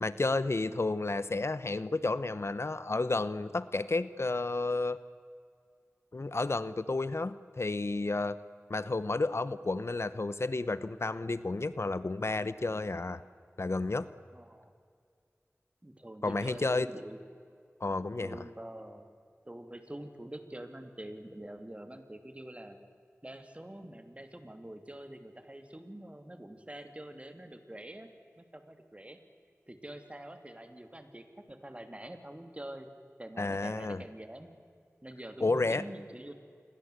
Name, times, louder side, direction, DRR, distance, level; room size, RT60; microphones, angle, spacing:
voice 1, 0.0-5.0 6.1-8.4 8.7-13.2 13.6-14.1 16.2-16.9 17.8-18.4 33.4-34.0 35.4-35.8, left 3 dB, 60° left, 15 dB, 0.9 m, -31 dB
voice 2, 14.3-14.7 15.8-17.2 18.2-19.1 19.4-22.8 23.2-28.1 28.4-29.2 29.7-32.9 33.2-34.5 35.0-36.3, right 1 dB, 25° right, 7 dB, 2.9 m, -46 dB
28.5 x 22.0 x 8.2 m, 2.2 s
wide cardioid pair, 50°, 5 cm